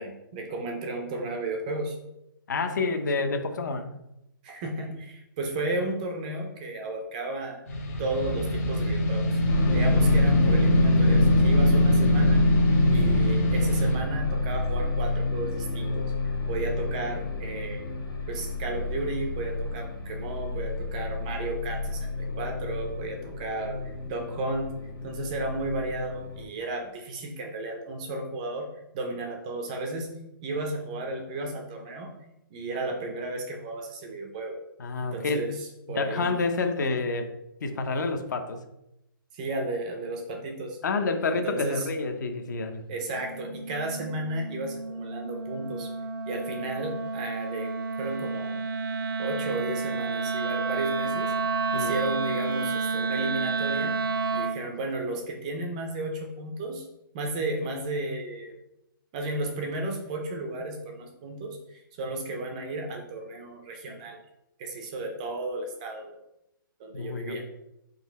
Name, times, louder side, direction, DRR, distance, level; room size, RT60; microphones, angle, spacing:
voice 1, 0.0-2.0 4.4-7.6 8.0-9.4 9.7-12.4 12.9-16.1 16.5-17.8 18.3-24.7 25.0-28.7 28.9-30.1 30.4-32.1 32.5-34.6 35.0-35.5 35.9-36.4 39.3-40.8 41.3-41.8 42.9-45.9 46.3-47.7 48.0-48.6 49.2-51.3 51.7-54.0 54.3-56.9 57.1-58.5 59.1-64.2 64.6-66.2 66.8-67.4, right 2 dB, 20° right, 3 dB, 0.4 m, -33 dB
voice 2, 2.5-3.9 34.8-35.4 35.9-37.3 37.6-38.6 40.8-42.8 51.7-51.9 66.9-67.4, left 3 dB, 55° left, 7 dB, 0.6 m, -28 dB
sound 1, 7.7-14.0, left 1 dB, 40° left, 1.0 m, -23 dB
sound 2, 9.5-26.4, left 2 dB, 90° left, 1.2 m, -29 dB
Wind instrument woodwind instrument, 43.1-54.7, right 4 dB, 70° right, 0.5 m, -30 dB
3.9 x 2.6 x 4.1 m, 0.85 s
hypercardioid pair, 165°, 12 cm